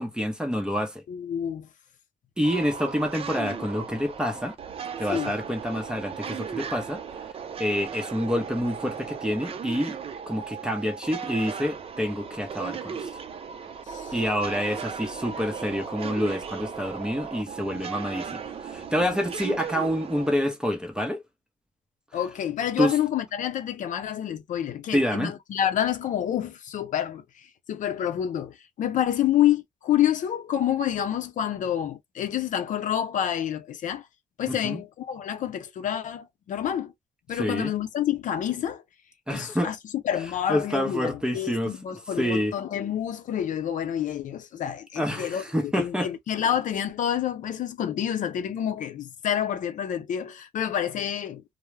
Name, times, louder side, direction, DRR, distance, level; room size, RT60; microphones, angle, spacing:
voice 1, 0.0-1.0 2.4-4.6 5.0-7.0 7.6-10.0 10.3-13.1 14.1-21.2 22.8-23.0 24.9-25.3 34.5-34.8 37.3-37.7 39.3-39.7 40.5-42.5 45.0-46.1, equal, 5° right, 0.7 m, -27 dB
voice 2, 1.1-1.7 5.1-5.3 13.9-14.1 22.1-34.0 34.4-36.9 37.3-38.8 39.3-39.8 40.0-51.4, left 10 dB, 60° left, 0.5 m, -28 dB
sound 1, 2.4-20.4, right 7 dB, 40° right, 0.5 m, -36 dB
2.3 x 2.0 x 3.1 m
cardioid pair, 105°, 15 cm